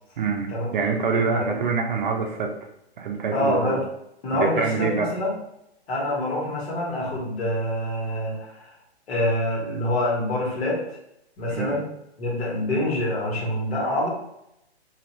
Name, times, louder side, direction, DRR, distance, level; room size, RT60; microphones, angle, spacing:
voice 1, 0.2-2.5 3.0-3.8 4.3-5.1 11.6-11.8, right 5 dB, 45° right, 3 dB, 0.5 m, -25 dB
voice 2, 3.3-3.8 4.2-5.4 5.9-8.6 9.1-11.0 11.4-11.9 12.2-14.1, left 1 dB, 65° left, -4 dB, 1.5 m, -26 dB
2.7 x 2.5 x 3.0 m, 0.81 s
hypercardioid pair, 150°, 33 cm